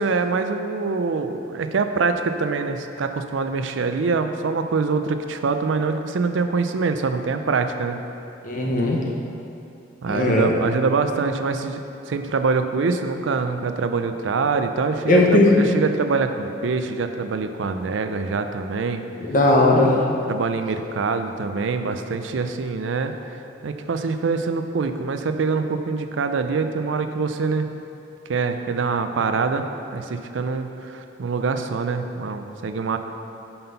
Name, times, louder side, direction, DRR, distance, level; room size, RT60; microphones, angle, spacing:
voice 1, 0.0-8.0 10.0-11.8 12.1-19.0 20.3-23.1 23.6-27.7 28.3-29.6 29.9-33.0, right 4 dB, 80° right, 8 dB, 0.4 m, -24 dB
voice 2, 8.4-9.0 10.1-10.5 15.1-15.6 19.2-20.0, left 2 dB, 45° left, -1 dB, 0.9 m, -17 dB
5.8 x 5.4 x 5.5 m, 2.7 s
head